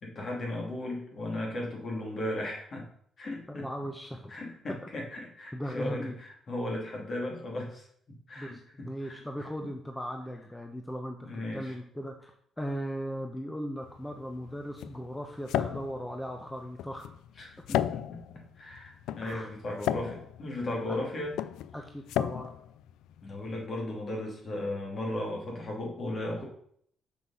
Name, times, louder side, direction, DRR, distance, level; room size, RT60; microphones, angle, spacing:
voice 1, 0.0-2.8 3.2-3.7 4.3-7.8 8.3-9.2 11.2-11.8 17.4-21.3 23.2-26.4, left 1 dB, 50° left, -1 dB, 2.8 m, -36 dB
voice 2, 3.5-4.3 5.5-6.1 8.4-12.3 12.6-17.1 19.2-19.8 20.9-21.1 21.7-22.5, equal, 10° left, 3 dB, 0.9 m, -38 dB
sound 1, 13.8-23.7, left 11 dB, 90° left, 0.3 m, -35 dB
6.2 x 5.9 x 5.6 m, 0.65 s
cardioid pair, 90°, 0 cm